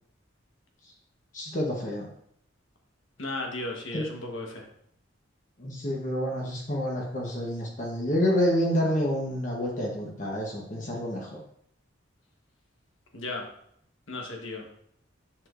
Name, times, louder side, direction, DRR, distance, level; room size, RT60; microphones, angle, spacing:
voice 1, 1.3-2.1 3.9-4.1 5.6-11.4, equal, 40° left, -1 dB, 1.0 m, -28 dB
voice 2, 3.2-4.7 13.1-13.5 14.1-14.7, left 2 dB, 75° left, 1 dB, 1.2 m, -35 dB
7.6 x 6.3 x 2.5 m, 0.69 s
head